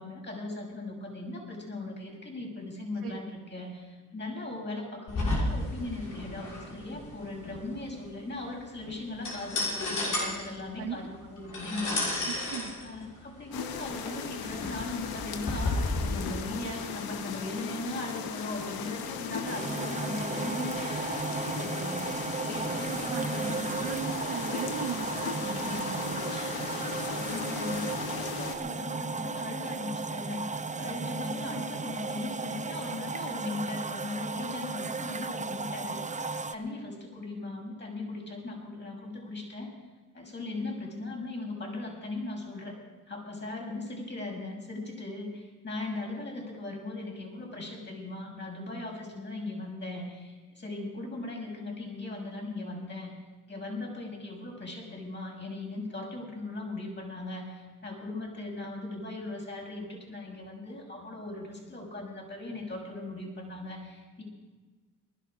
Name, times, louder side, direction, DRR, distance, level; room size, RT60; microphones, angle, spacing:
voice 1, 0.0-23.6 25.4-25.9 26.3-26.7 27.1-39.7 40.1-42.8 43.1-53.1 53.5-64.2, left 2 dB, 30° left, 0 dB, 6.4 m, -38 dB
sound 1, 5.1-16.0, left 2 dB, 60° left, 6.2 m, -33 dB
voice 2, 12.3-12.7 22.9-26.9, right 7 dB, 75° right, -1 dB, 2.0 m, -39 dB
sound 2, 13.5-28.6, left 7 dB, 85° left, 1.3 m, -37 dB
sound 3, 19.4-36.5, right 4 dB, 20° right, 0.8 m, -35 dB
20.0 x 12.0 x 4.9 m, 1.3 s
cardioid pair, 70°, 36 cm